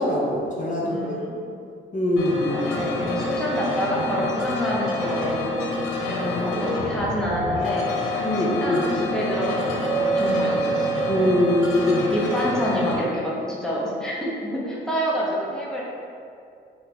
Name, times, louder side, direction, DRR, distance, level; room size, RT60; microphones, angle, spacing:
voice 1, 0.0-1.2 1.9-2.7 6.0-6.7 8.2-8.8 11.1-12.1, left 1 dB, 40° left, -4 dB, 0.8 m, -23 dB
voice 2, 0.8-1.4 2.5-5.7 6.4-7.9 8.4-10.9 12.1-15.8, equal, 5° left, -6 dB, 0.8 m, -28 dB
sound 1, 2.2-13.0, left 2 dB, 85° left, 0.7 m, -28 dB
Doorbell, 7.3-12.1, right 3 dB, 30° right, 0.6 m, -28 dB
4.2 x 2.2 x 4.3 m, 2.4 s
cardioid pair, 90°, 20 cm